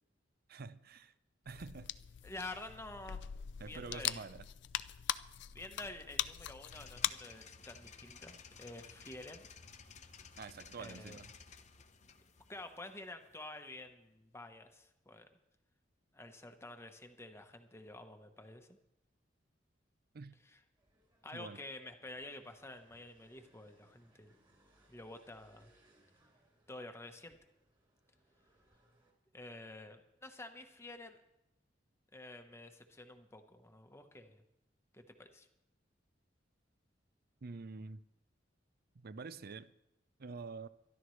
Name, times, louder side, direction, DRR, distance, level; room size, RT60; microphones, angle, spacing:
voice 1, 0.5-1.1 1.5-1.9 3.6-4.5 10.4-11.3 20.1-20.4 21.3-21.6 37.4-38.0 38.9-39.7 40.2-40.7, right 4 dB, 55° right, 0.5 m, -47 dB
sound 1, 1.5-7.1, left 12 dB, 65° left, 0.4 m, -41 dB
voice 2, 2.2-3.2 3.6-4.2 5.5-9.5 10.7-11.2 12.5-15.3 16.1-18.8 20.4-20.6 21.2-24.4 24.9-25.7 26.7-27.4 29.3-31.2 32.1-34.4 34.9-35.5, left 2 dB, 15° left, 1.0 m, -49 dB
sound 2, 6.7-13.7, left 5 dB, 40° left, 0.8 m, -56 dB
sound 3, 20.8-29.1, right 1 dB, 25° right, 3.4 m, -71 dB
23.5 x 11.5 x 3.2 m
head